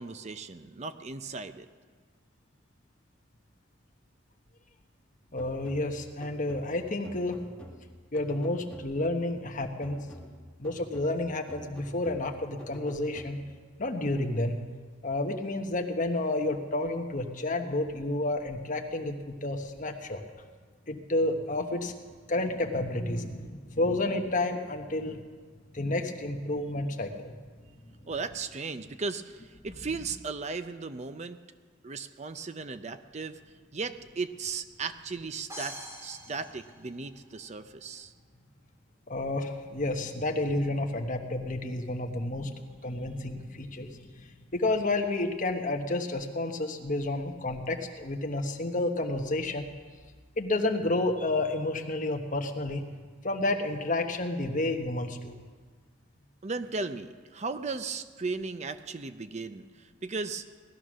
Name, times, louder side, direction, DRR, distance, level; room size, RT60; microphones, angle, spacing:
voice 1, 0.0-1.7 28.1-31.4 31.8-33.4 33.7-35.8 36.0-38.1 56.4-60.4, right 4 dB, 35° right, 10 dB, 0.6 m, -36 dB
voice 2, 5.3-7.4 8.1-10.0 10.6-13.4 13.8-14.6 15.0-20.2 20.9-21.9 22.3-25.2 25.7-27.3 39.1-42.5 42.8-49.7 50.4-52.8 53.2-55.3, left 2 dB, 40° left, 4 dB, 1.3 m, -30 dB
sound 1, 5.4-9.2 9.8-13.7, equal, 5° left, 1.5 m, -48 dB
sound 2, 35.5-37.5, equal, 15° right, 2.6 m, -44 dB
18.0 x 12.5 x 6.2 m, 1.6 s
head